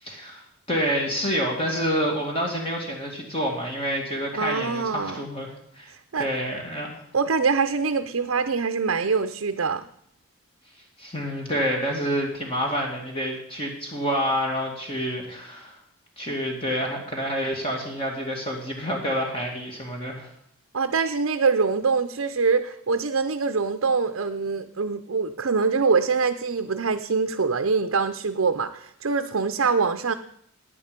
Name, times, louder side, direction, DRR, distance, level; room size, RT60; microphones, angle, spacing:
voice 1, 0.0-5.9 6.2-7.0 11.0-15.8 16.2-20.3, equal, 25° left, 0 dB, 2.3 m, -28 dB
voice 2, 4.3-5.2 5.9-6.3 7.1-9.8 20.7-30.1, right 4 dB, 70° right, 8 dB, 0.6 m, -24 dB
15.5 x 9.5 x 5.2 m, 0.70 s
head